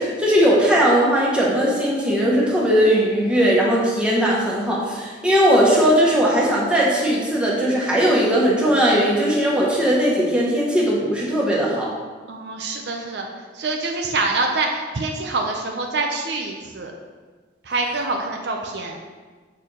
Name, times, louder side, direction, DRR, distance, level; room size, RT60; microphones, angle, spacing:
voice 1, 0.0-11.9, equal, 5° right, -6 dB, 1.2 m, -18 dB
voice 2, 12.3-13.3 13.5-16.9 17.7-19.0, right 3 dB, 60° right, 2 dB, 0.6 m, -25 dB
6.8 x 4.5 x 3.8 m, 1.4 s
head